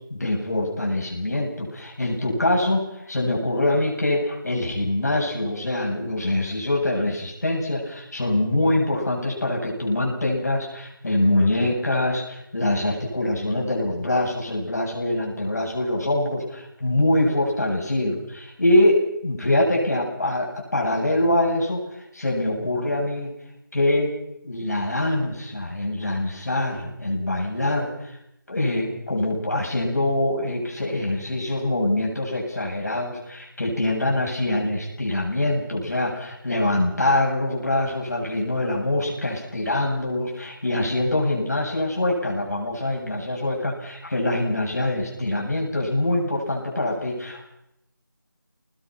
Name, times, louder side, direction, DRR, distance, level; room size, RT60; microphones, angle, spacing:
voice 1, 0.1-21.8 22.1-23.3 23.7-24.1 24.4-28.1 28.5-47.5, left 1 dB, 50° left, -1 dB, 7.6 m, -24 dB
27.0 x 20.0 x 6.1 m, 0.80 s
figure-of-eight pair, 180°, 11 cm